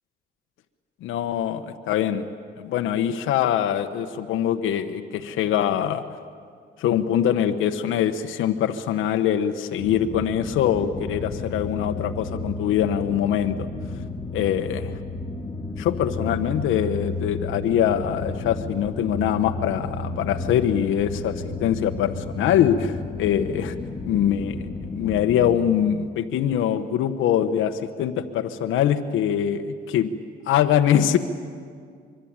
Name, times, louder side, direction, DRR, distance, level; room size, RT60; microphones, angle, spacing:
voice 1, 1.0-2.2 2.6-6.0 6.8-13.7 14.3-14.9 15.8-23.7 24.0-24.7 24.9-30.1 30.5-31.2, left 10 dB, 85° left, 7 dB, 1.2 m, -23 dB
sound 1, 9.8-25.6, left 3 dB, 20° left, 3.1 m, -32 dB
25.5 x 23.0 x 8.9 m, 2.1 s
cardioid pair, 90°, 20 cm